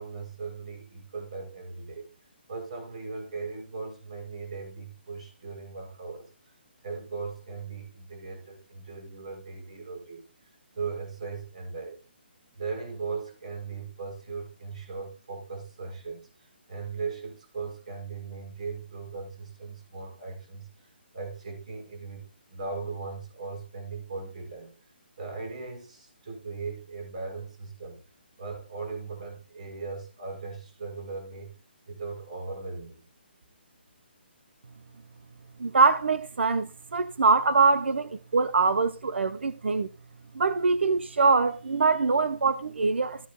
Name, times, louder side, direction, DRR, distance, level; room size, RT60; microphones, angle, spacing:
voice 1, 0.0-2.1 2.5-6.5 6.8-10.2 10.8-12.0 12.6-24.7 25.2-28.0 28.4-31.5 31.9-33.0, right 4 dB, 40° right, 5.7 m, -38 dB
voice 2, 35.6-39.9 40.4-43.3, right 4 dB, 90° right, 0.9 m, -23 dB
14.5 x 10.0 x 2.3 m
hypercardioid pair, 180°, 6 cm